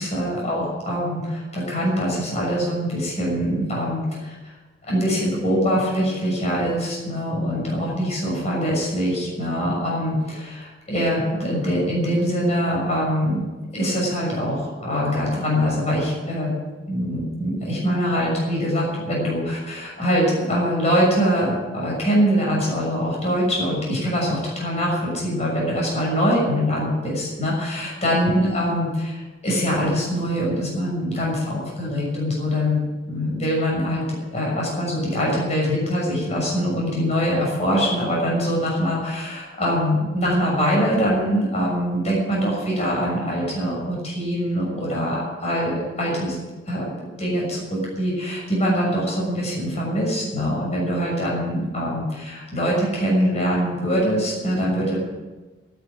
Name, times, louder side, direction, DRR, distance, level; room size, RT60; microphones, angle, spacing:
voice 1, 0.0-4.5 4.9-13.4 13.7-16.5 16.9-32.8 33.1-46.4 46.7-46.9 47.2-55.0, equal, 35° left, -3 dB, 6.4 m, -23 dB
14.0 x 9.6 x 9.4 m, 1.2 s
head